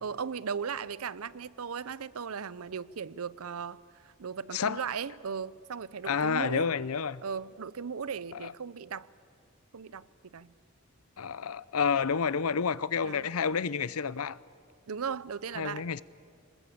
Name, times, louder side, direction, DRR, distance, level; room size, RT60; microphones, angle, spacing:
voice 1, 0.0-6.7 7.2-9.1 9.7-10.5 13.0-13.3 14.9-15.9, right 6 dB, 80° right, 0.6 m, -37 dB
voice 2, 6.0-7.2 8.4-8.5 11.2-14.4 15.6-16.0, left 6 dB, 85° left, 0.6 m, -29 dB
26.5 x 20.5 x 8.6 m
head